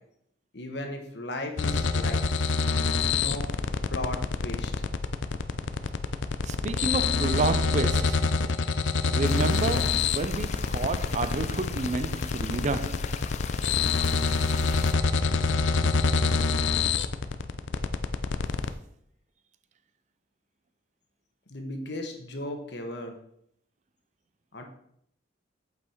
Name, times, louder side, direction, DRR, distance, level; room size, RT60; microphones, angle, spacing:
voice 1, 0.5-2.2 3.1-3.5 3.9-4.7 21.5-23.2 24.5-24.6, left 1 dB, 65° left, 1.4 m, -36 dB
sound 1, 1.6-18.7, left 4 dB, 85° left, 0.5 m, -26 dB
voice 2, 6.4-8.4 9.1-13.2, right 3 dB, 40° right, 0.4 m, -30 dB
sound 2, 9.2-14.9, left 6 dB, 40° left, 0.5 m, -41 dB
8.1 x 5.5 x 4.5 m
head